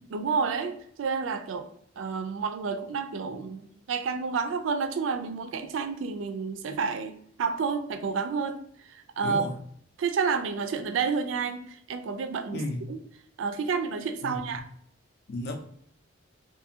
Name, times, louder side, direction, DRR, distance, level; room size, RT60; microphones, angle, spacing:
voice 1, 0.1-1.7 2.0-7.1 7.4-9.5 10.0-12.6 12.9-13.0 13.4-14.6, right 5 dB, 80° right, 7 dB, 0.4 m, -30 dB
voice 2, 9.2-9.6 12.5-12.8 14.2-14.4 15.3-15.6, left 1 dB, 60° left, 4 dB, 0.4 m, -33 dB
2.6 x 2.5 x 2.7 m, 0.63 s
head